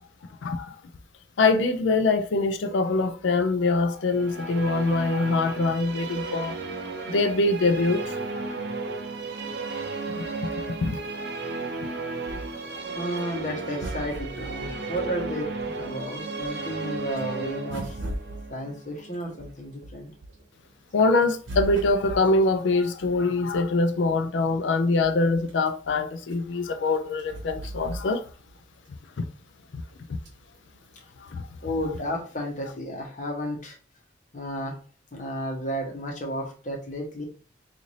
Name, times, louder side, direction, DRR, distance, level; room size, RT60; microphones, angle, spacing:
voice 1, 0.4-0.8 1.4-6.6 7.1-8.4 10.2-10.3 10.7-11.0 20.9-28.2 29.2-29.3 29.7-29.8 31.2-31.5, left 3 dB, 75° left, 0.4 m, -24 dB
Musical instrument, 4.0-19.5, right 3 dB, 60° right, 0.6 m, -34 dB
sound 1, 12.2-16.0 16.4-20.5 20.9-23.8 24.4-24.5 24.7-28.6 28.9-29.0 30.2-30.6 31.2-31.3, right 1 dB, 80° right, 0.9 m, -39 dB
voice 2, 12.9-15.5 15.8-18.0 18.5-20.1 31.6-33.8 34.3-34.7 35.1-37.2, equal, 40° left, 0.9 m, -32 dB
3.1 x 2.6 x 3.9 m
head